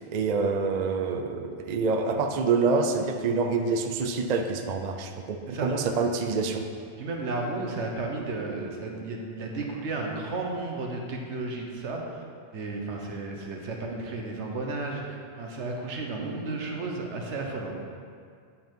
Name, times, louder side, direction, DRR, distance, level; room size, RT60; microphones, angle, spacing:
voice 1, 0.1-6.6, right 4 dB, 50° right, 5 dB, 0.6 m, -26 dB
voice 2, 7.0-12.2 12.5-17.7, right 3 dB, 85° right, 1 dB, 1.3 m, -33 dB
9.5 x 5.5 x 4.5 m, 2.2 s
omnidirectional pair, 1.1 m